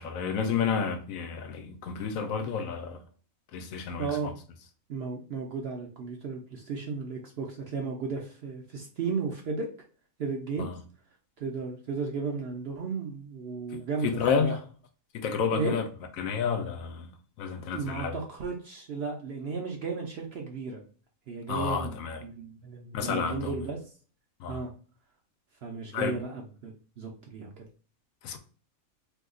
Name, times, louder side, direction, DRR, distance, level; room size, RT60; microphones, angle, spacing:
voice 1, 0.0-3.0 3.5-4.3 10.6-10.8 13.7-14.6 15.1-15.9 16.2-17.1 17.4-18.2 21.5-22.2 22.9-23.6 24.4-24.6 25.9-26.2 28.2-28.4, left 6 dB, 75° left, 1.0 m, -30 dB
voice 2, 4.0-4.3 4.9-9.7 10.2-10.7 11.4-14.5 15.5-15.8 17.7-20.8 21.3-22.0 22.2-23.8 24.5-24.7 25.6-27.7, right 4 dB, 60° right, 0.7 m, -34 dB
2.8 x 2.3 x 3.6 m
omnidirectional pair, 1.5 m